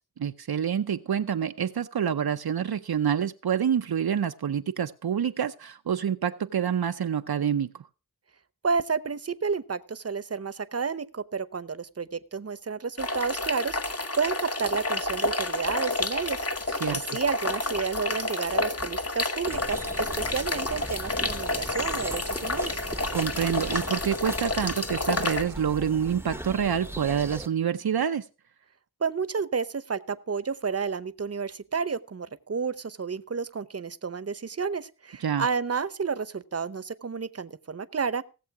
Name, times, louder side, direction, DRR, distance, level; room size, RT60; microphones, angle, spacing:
voice 1, 0.2-7.7 16.8-17.2 23.1-28.2 35.2-35.5, right 8 dB, 75° right, 0.6 m, -27 dB
voice 2, 8.6-16.5 16.9-22.7 29.0-38.2, right 5 dB, 40° right, 0.8 m, -31 dB
sound 1, 13.0-25.4, left 2 dB, 40° left, 1.2 m, -30 dB
sound 2, 19.5-27.5, right 1 dB, 5° right, 0.8 m, -39 dB
17.5 x 7.5 x 4.8 m
wide cardioid pair, 55°, 38 cm